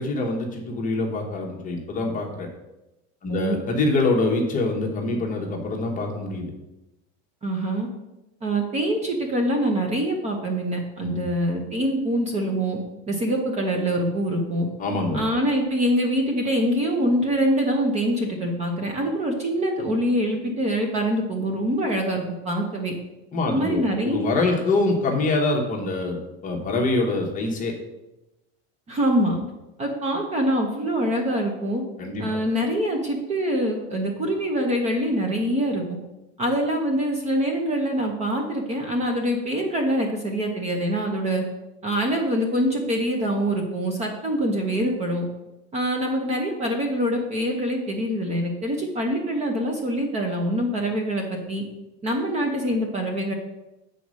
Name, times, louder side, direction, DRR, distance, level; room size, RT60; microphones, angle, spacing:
voice 1, 0.0-2.5 3.2-6.5 11.0-11.3 14.8-15.2 23.3-26.2 26.4-27.7 32.0-32.4, left 2 dB, 25° left, 1 dB, 1.1 m, -25 dB
voice 2, 7.4-7.9 8.4-12.8 13.1-14.7 15.1-22.9 23.5-24.3 28.9-29.4 29.8-31.8 32.2-36.0 36.4-41.4 41.8-45.3 45.7-51.6 52.0-53.3, equal, 20° right, 2 dB, 0.8 m, -24 dB
7.7 x 4.2 x 6.2 m, 0.97 s
cardioid pair, 170°, 33 cm